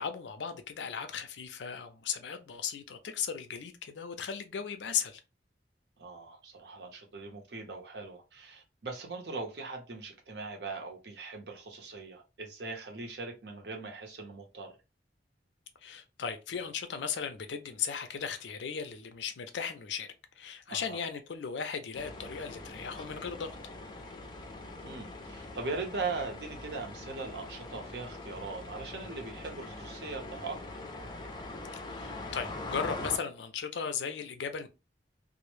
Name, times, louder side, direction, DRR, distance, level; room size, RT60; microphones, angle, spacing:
voice 1, 0.0-5.2 15.8-20.1 20.4-23.5 31.9-34.7, left 6 dB, 85° left, 0.4 m, -36 dB
voice 2, 6.0-14.7 20.7-21.0 24.8-30.6, right 3 dB, 65° right, 0.7 m, -40 dB
sound 1, 21.9-33.2, left 2 dB, 25° left, 0.4 m, -43 dB
2.0 x 2.0 x 3.0 m
head